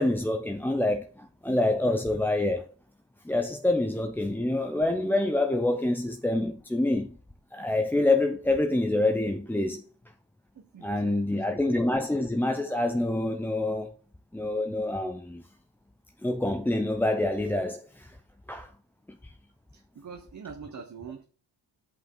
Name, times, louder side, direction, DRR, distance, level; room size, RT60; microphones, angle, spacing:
voice 1, 0.0-2.7 3.2-7.2 7.5-9.8 10.8-13.9 14.3-15.4 16.2-18.2 18.5-18.7 19.1-19.3, left 2 dB, 5° left, 0.5 m, -26 dB
voice 2, 10.5-11.6 19.7-21.2, right 6 dB, 40° right, 1.1 m, -44 dB
8.3 x 8.0 x 3.8 m
wide cardioid pair, 130°, 43 cm